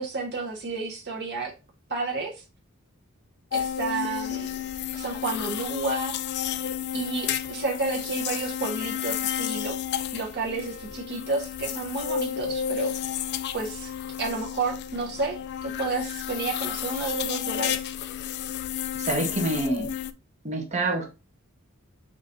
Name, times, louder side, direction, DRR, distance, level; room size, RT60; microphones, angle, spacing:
voice 1, 0.0-1.5 1.9-2.4 3.5-4.5 4.9-6.2 6.9-9.8 10.1-12.9 13.5-13.9 14.2-17.8, right 3 dB, 55° right, 1.1 m, -31 dB
sound 1, 3.5-20.1, left 9 dB, 50° left, 0.3 m, -32 dB
voice 2, 18.9-19.9 20.4-21.1, right 2 dB, 30° right, 1.1 m, -27 dB
5.0 x 2.8 x 3.8 m
head